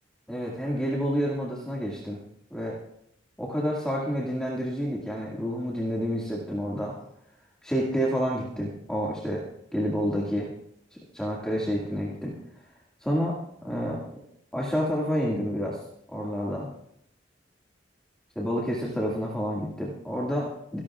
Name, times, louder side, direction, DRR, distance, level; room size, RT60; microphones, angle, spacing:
voice 1, 0.3-2.2 2.5-2.8 3.4-7.0 7.6-9.5 9.7-10.5 11.1-12.3 13.0-13.4 13.6-14.1 14.5-15.8 16.1-16.7 18.4-20.8, equal, 5° left, -5 dB, 2.0 m, -29 dB
26.5 x 12.0 x 2.4 m, 0.76 s
head